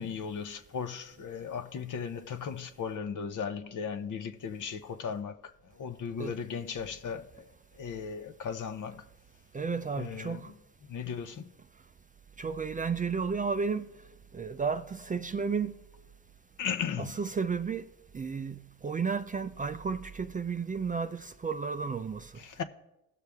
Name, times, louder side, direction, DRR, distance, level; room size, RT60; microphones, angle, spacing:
voice 1, 0.0-7.4 7.7-9.1 10.0-10.4 10.9-11.5 16.6-17.2 22.4-22.6, left 6 dB, 55° left, 0.9 m, -37 dB
voice 2, 9.5-10.5 12.4-13.9 14.3-15.8 17.0-17.9 18.1-22.3, right 5 dB, 20° right, 0.4 m, -32 dB
16.5 x 6.5 x 3.5 m
supercardioid pair, 70°, 37 cm